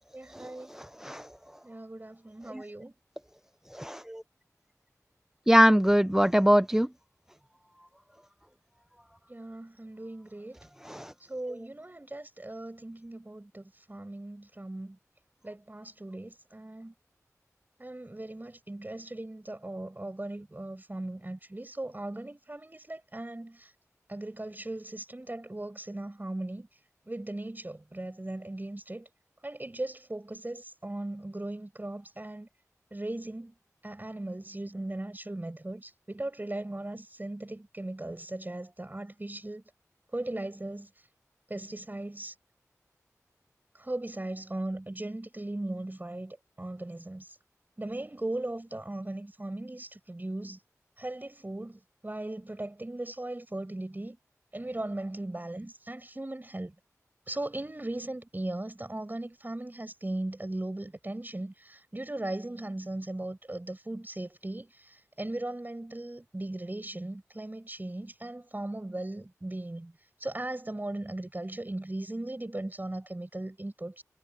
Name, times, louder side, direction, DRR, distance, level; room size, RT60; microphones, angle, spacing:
voice 1, 0.1-0.7 1.6-2.9 9.3-10.6 11.3-15.0 15.4-16.9 17.8-23.7 24.1-26.7 27.1-29.1 29.4-32.5 32.9-33.5 33.8-39.6 40.1-40.9 41.5-42.3 43.7-47.3 47.8-50.6 51.0-54.2 54.5-56.7 57.3-69.9 70.2-74.0, right 1 dB, 30° right, 6.8 m, -38 dB
voice 2, 0.7-1.2 3.7-4.2 5.5-6.9 10.9-11.1, equal, 10° right, 0.5 m, -22 dB
cardioid pair, 40°, 6 cm